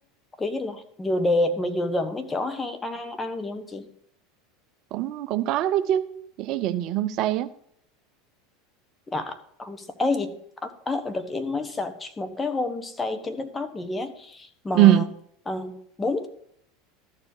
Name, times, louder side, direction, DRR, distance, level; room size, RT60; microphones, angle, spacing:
voice 1, 0.4-3.9 9.1-15.1 15.4-16.3, left 2 dB, 15° left, 8 dB, 1.3 m, -29 dB
voice 2, 4.9-6.1 6.4-7.5 14.7-15.1, right 13 dB, 55° right, 13 dB, 0.6 m, -21 dB
13.0 x 4.8 x 6.5 m, 0.68 s
hypercardioid pair, 95°, 0 cm